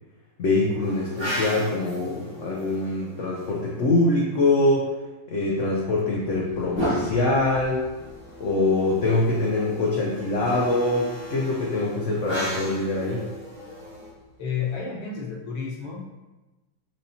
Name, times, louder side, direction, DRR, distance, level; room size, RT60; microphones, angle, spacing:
voice 1, 0.4-4.9 5.3-7.8 8.4-13.3, left 2 dB, 85° left, -3 dB, 0.6 m, -24 dB
sound 1, 0.8-4.0 5.8-14.8, equal, 20° right, 0.8 m, -35 dB
voice 2, 14.4-16.2, left 6 dB, 45° left, -5 dB, 0.4 m, -31 dB
6.1 x 2.7 x 2.8 m, 1.1 s
omnidirectional pair, 2.0 m